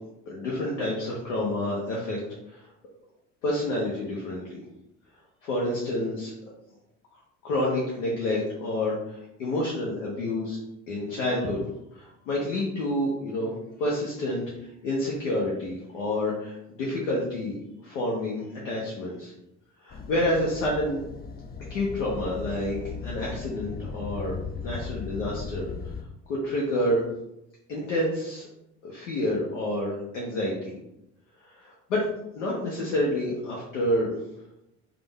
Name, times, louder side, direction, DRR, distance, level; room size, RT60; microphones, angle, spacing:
voice 1, 0.3-2.2 2.5-2.7 3.4-4.6 5.4-6.3 7.4-10.6 10.9-11.6 11.9-19.3 19.8-21.1 21.7-24.4 24.6-25.7 26.3-27.0 27.7-28.5 28.8-30.7 31.4-32.1 32.3-34.2, left 1 dB, 75° left, -4 dB, 1.0 m, -29 dB
sound 1, 19.9-26.0, left 5 dB, 25° left, 0.5 m, -37 dB
5.2 x 2.5 x 3.3 m, 0.85 s
hypercardioid pair, 55°, 36 cm